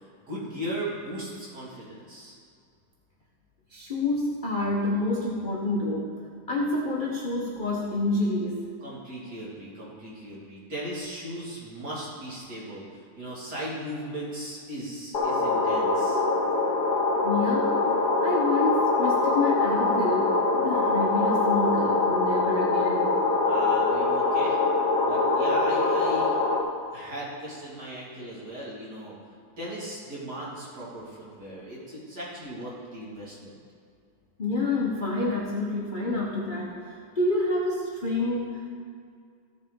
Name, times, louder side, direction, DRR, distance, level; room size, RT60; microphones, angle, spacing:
voice 1, 0.2-2.4 8.8-16.2 23.5-24.6 25.0-26.4 26.9-29.1 29.6-33.5, right 1 dB, 55° right, -7 dB, 2.6 m, -37 dB
voice 2, 3.7-6.1 6.5-8.6 17.2-17.9 18.2-23.1 34.4-38.8, left 2 dB, 35° left, -3 dB, 0.9 m, -28 dB
sound 1, 15.1-26.6, left 3 dB, 60° left, 1.4 m, -24 dB
15.0 x 6.9 x 3.7 m, 2.3 s
omnidirectional pair, 2.2 m